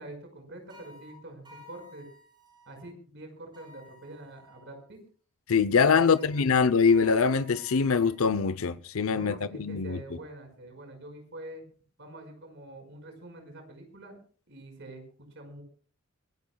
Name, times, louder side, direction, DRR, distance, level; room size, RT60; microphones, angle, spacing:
voice 1, 0.0-2.1 2.7-5.0 5.8-6.4 9.0-11.6 12.0-14.2 14.5-15.6, right 1 dB, 55° right, 5.3 m, -45 dB
sound 1, 0.7-2.8 3.5-4.8 6.1-8.3, left 2 dB, 20° right, 6.6 m, -54 dB
voice 2, 5.5-10.0, left 5 dB, 75° left, 0.7 m, -23 dB
24.5 x 16.5 x 2.3 m
head